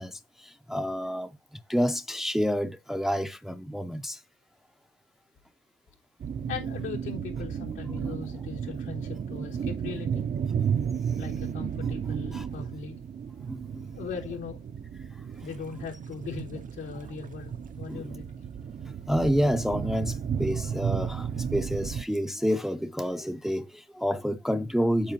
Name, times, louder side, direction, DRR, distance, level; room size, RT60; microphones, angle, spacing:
voice 1, 0.0-1.4 1.7-4.2 12.3-12.5 13.5-13.9 17.9-18.1 19.1-25.1, equal, ahead, 0.7 m, -29 dB
sound 1, 6.2-22.0, right 7 dB, 40° right, 0.7 m, -33 dB
voice 2, 6.5-10.3 11.2-13.0 13.9-14.6 15.4-18.3, left 5 dB, 80° left, 3.6 m, -39 dB
8.8 x 7.2 x 3.0 m
cardioid pair, 90°, 20 cm